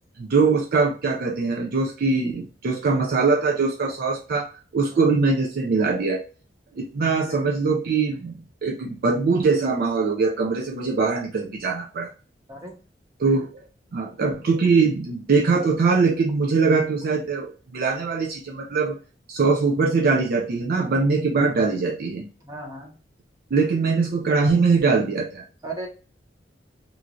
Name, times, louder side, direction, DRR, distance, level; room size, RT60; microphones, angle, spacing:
voice 1, 0.2-4.5 4.7-6.2 6.8-8.3 8.6-12.1 13.2-13.5 13.9-19.0 19.3-22.3 23.5-25.4, right 4 dB, 55° right, 2 dB, 0.4 m, -22 dB
voice 2, 22.4-23.0 25.6-25.9, right 2 dB, 20° right, -1 dB, 0.9 m, -36 dB
3.0 x 2.4 x 2.4 m, 0.36 s
head